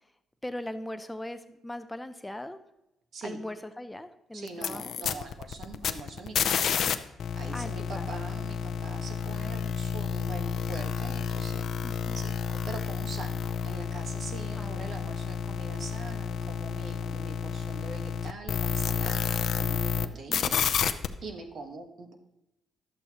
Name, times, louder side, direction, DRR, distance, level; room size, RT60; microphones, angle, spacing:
voice 1, 0.4-2.6 3.2-4.9 7.5-8.1 11.8-12.2 14.6-14.9 20.3-20.4, left 1 dB, 10° left, 10 dB, 0.5 m, -39 dB
voice 2, 4.3-6.8 7.3-22.1, right 3 dB, 60° right, 4 dB, 1.3 m, -43 dB
sound 1, 4.5-6.9 7.2-20.1 20.3-21.1, left 7 dB, 65° left, 0.5 m, -30 dB
11.5 x 8.0 x 2.9 m, 0.88 s
cardioid pair, 90°, 0 cm